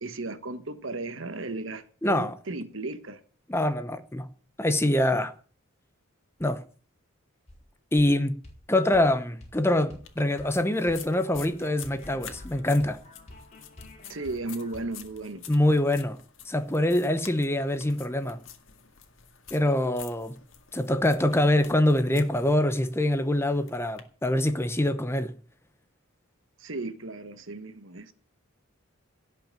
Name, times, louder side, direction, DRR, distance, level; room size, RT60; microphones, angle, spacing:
voice 1, 0.0-3.2 14.1-15.4 26.6-28.1, right 2 dB, 65° right, 1.3 m, -35 dB
voice 2, 2.0-2.3 3.5-4.3 4.6-5.3 6.4-6.6 7.9-8.4 8.7-13.0 15.5-16.2 16.5-18.4 19.5-20.3 20.7-25.3, left 1 dB, 10° left, 0.8 m, -24 dB
sound 1, 7.5-7.6 8.0-8.1 8.4-8.6 8.9-9.1 9.4-9.6 9.9-10.1 10.4-15.0, left 1 dB, 30° left, 4.7 m, -49 dB
sound 2, 10.0-24.0, left 8 dB, 60° left, 2.0 m, -49 dB
17.5 x 5.9 x 9.0 m
head